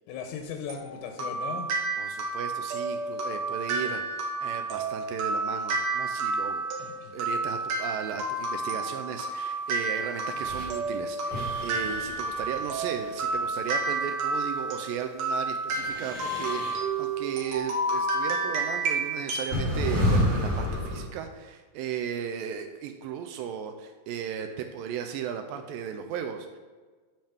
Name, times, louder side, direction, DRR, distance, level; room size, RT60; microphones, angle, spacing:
voice 1, 0.1-1.7 6.8-7.1, left 6 dB, 85° left, 5 dB, 2.7 m, -37 dB
sound 1, 0.7-19.6, right 3 dB, 65° right, 1.8 m, -30 dB
voice 2, 2.0-6.6 7.1-26.6, right 8 dB, 85° right, 6 dB, 2.0 m, -36 dB
sound 2, 10.3-10.7 11.3-13.3 15.7-16.8 18.3-18.4 19.5-21.0, left 1 dB, 30° right, 1.7 m, -29 dB
8.9 x 5.5 x 3.5 m, 1.4 s
omnidirectional pair, 4.5 m